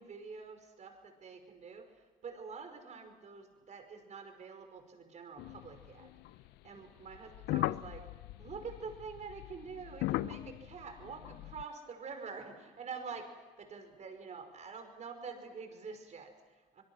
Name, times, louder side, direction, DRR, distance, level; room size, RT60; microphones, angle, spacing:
voice 1, 0.0-6.1 6.6-8.1 8.4-13.2 13.6-16.8, right 5 dB, 45° right, 6 dB, 5.3 m, -46 dB
sound 1, 5.4-6.5 7.1-11.6, left 17 dB, 85° left, 0.6 m, -39 dB
25.5 x 22.5 x 6.3 m, 1.4 s
cardioid pair, 110°, 17 cm